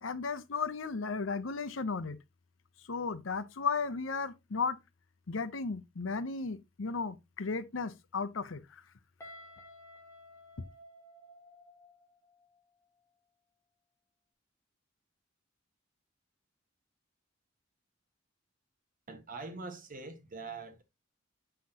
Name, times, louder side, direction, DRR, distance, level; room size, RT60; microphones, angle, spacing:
voice 1, 0.0-2.2 2.9-4.8 5.3-8.8, left 4 dB, 85° left, 0.7 m, -35 dB
Guitar, 9.2-12.0, left 1 dB, 15° left, 2.4 m, -53 dB
voice 2, 19.1-20.8, right 3 dB, 45° right, 1.5 m, -43 dB
7.6 x 5.8 x 2.8 m
head